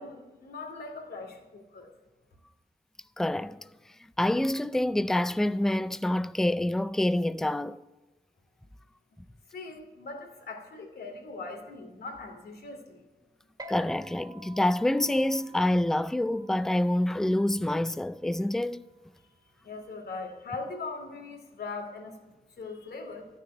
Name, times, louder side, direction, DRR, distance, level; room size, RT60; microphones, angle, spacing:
voice 1, 0.0-1.9 9.5-13.0 19.6-23.3, left 3 dB, 85° left, 2.6 m, -40 dB
voice 2, 3.2-3.6 4.2-7.8 13.7-18.8, left 1 dB, 5° left, 0.4 m, -27 dB
sound 1, 13.6-20.4, right 2 dB, 25° right, 1.9 m, -52 dB
13.5 x 6.5 x 9.9 m
wide cardioid pair, 95°, 16 cm